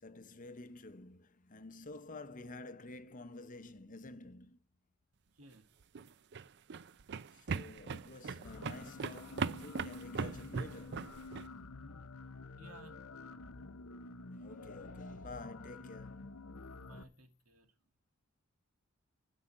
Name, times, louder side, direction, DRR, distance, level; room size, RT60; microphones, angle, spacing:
voice 1, 0.0-4.6 7.3-11.1 14.3-16.4, left 2 dB, 35° left, 0.7 m, -50 dB
voice 2, 5.3-5.7 12.6-13.0 16.8-17.7, right 1 dB, 80° right, 2.2 m, -57 dB
sound 1, 5.8-11.5, right 5 dB, 50° right, 0.5 m, -39 dB
sound 2, 8.4-17.0, left 3 dB, 70° left, 0.8 m, -49 dB
12.5 x 5.5 x 9.0 m
head